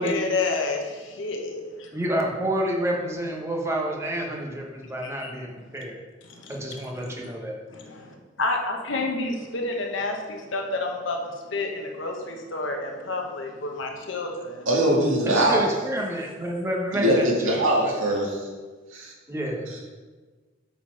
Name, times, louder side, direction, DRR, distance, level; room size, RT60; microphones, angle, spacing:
voice 1, 0.0-1.9 5.0-5.3 6.3-6.8 7.7-14.7, left 3 dB, 65° left, 2 dB, 1.0 m, -30 dB
voice 2, 1.9-6.0 6.5-7.5 15.3-17.9 19.3-19.7, right 1 dB, 15° right, -1 dB, 1.1 m, -29 dB
voice 3, 14.7-15.6 16.9-18.5 18.9-19.1, right 1 dB, 75° right, -3 dB, 2.1 m, -22 dB
8.1 x 4.3 x 6.3 m, 1.4 s
head